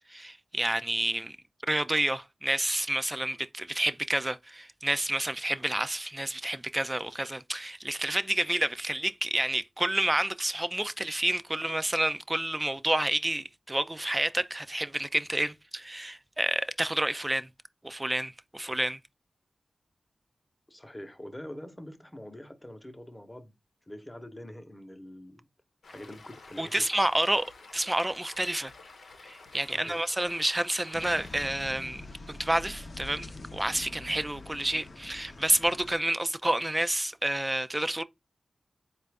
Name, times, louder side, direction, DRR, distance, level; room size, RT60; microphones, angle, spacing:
voice 1, 0.1-1.4 1.7-17.5 17.8-19.0 26.6-28.7 29.2-32.0 32.3-38.0, right 1 dB, 20° right, 0.4 m, -29 dB
voice 2, 20.7-23.5 23.9-25.4 25.9-26.9 29.7-30.0, left 1 dB, 20° left, 0.9 m, -44 dB
Stream, 25.8-31.5, left 3 dB, 90° left, 0.9 m, -51 dB
sound 1, 30.9-36.0, left 2 dB, 55° left, 0.7 m, -45 dB
4.4 x 2.5 x 3.4 m
cardioid pair, 60°, 0 cm